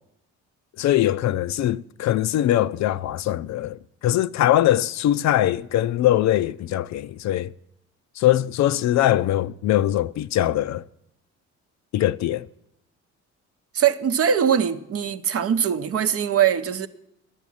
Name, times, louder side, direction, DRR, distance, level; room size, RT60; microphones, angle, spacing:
voice 1, 0.8-7.5 8.2-10.8 11.9-12.5, left 13 dB, 65° left, 0.4 m, -22 dB
voice 2, 13.7-16.9, right 8 dB, 50° right, 0.7 m, -21 dB
10.5 x 7.3 x 8.5 m
cardioid pair, 90°, 30 cm